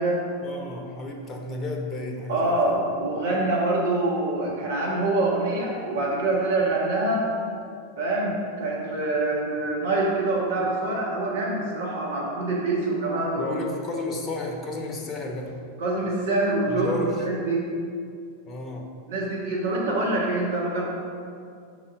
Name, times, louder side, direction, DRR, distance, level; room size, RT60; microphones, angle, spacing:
voice 1, 0.4-2.8 13.4-15.5 16.7-17.2 18.5-18.9, left 2 dB, 25° left, 2 dB, 0.9 m, -32 dB
voice 2, 2.3-7.3 8.0-13.5 15.8-16.9 17.2-17.7 19.1-20.8, right 2 dB, 60° right, -4 dB, 1.4 m, -25 dB
5.6 x 4.2 x 5.8 m, 2.3 s
figure-of-eight pair, 90°, 0 cm